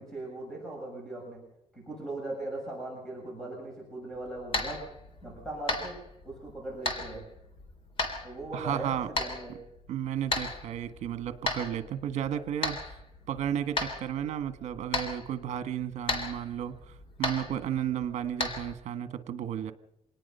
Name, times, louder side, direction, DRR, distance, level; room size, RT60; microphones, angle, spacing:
voice 1, 0.0-1.4 1.7-4.8 5.2-7.2 8.2-9.6, right 2 dB, 5° left, -1 dB, 7.4 m, -39 dB
sound 1, 4.1-18.7, left 2 dB, 45° left, 3.5 m, -36 dB
voice 2, 8.5-9.1 9.9-12.8 13.3-19.7, right 10 dB, 65° right, 10 dB, 1.5 m, -33 dB
26.0 x 19.0 x 5.6 m, 0.79 s
cardioid pair, 160°, 12 cm